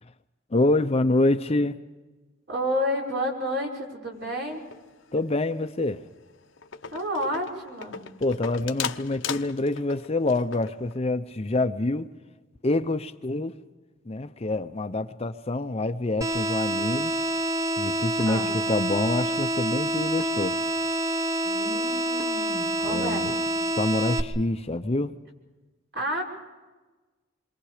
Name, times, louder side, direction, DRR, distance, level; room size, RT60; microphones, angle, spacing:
voice 1, 0.5-1.8 5.1-6.1 8.2-12.1 12.6-13.5 14.1-17.1 17.8-20.6 22.9-23.3 23.8-25.1, left 2 dB, 30° left, 0.7 m, -26 dB
voice 2, 2.5-4.6 6.9-8.0 18.2-18.5 21.4-23.3 25.9-26.2, equal, 60° right, 5.8 m, -30 dB
sound 1, 4.5-5.2 5.5-5.8 6.2-6.3 6.6-11.0, left 7 dB, 70° left, 0.9 m, -37 dB
sound 2, 16.2-24.2, right 1 dB, 15° right, 1.0 m, -27 dB
28.0 x 23.5 x 5.0 m
head